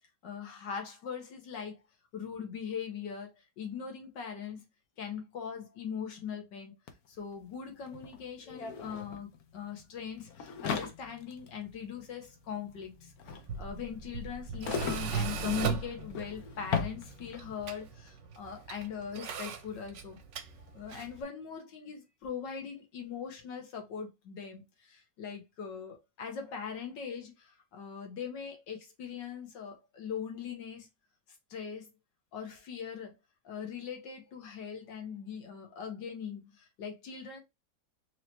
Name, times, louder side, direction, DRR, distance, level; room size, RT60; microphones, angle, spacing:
voice 1, 0.2-1.8 2.1-4.6 5.0-6.7 7.1-20.2 20.7-30.9 31.5-31.9 32.3-33.1 33.4-37.4, left 7 dB, 85° left, 1.8 m, -41 dB
sound 1, 6.9-7.0 7.2-17.6, left 6 dB, 60° left, 1.3 m, -40 dB
Tools, 13.3-21.2, right 6 dB, 60° right, 0.8 m, -38 dB
4.8 x 3.0 x 2.9 m
omnidirectional pair, 1.9 m